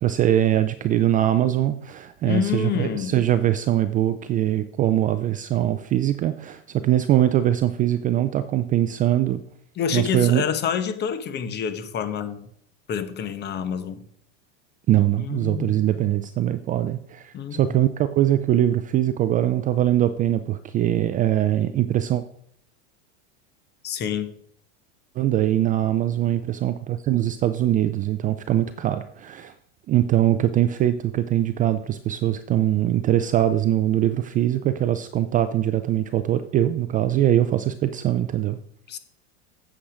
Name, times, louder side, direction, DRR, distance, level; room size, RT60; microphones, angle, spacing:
voice 1, 0.0-9.4 9.9-10.4 14.9-22.2 25.2-29.5 29.9-38.6, right 12 dB, 25° right, 0.4 m, -22 dB
voice 2, 2.2-3.1 9.8-12.5 12.9-14.0 15.2-15.9 17.3-17.8 23.8-24.3 38.9-39.0, left 7 dB, 30° left, 1.1 m, -27 dB
8.7 x 7.2 x 4.9 m
supercardioid pair, 125°, 34 cm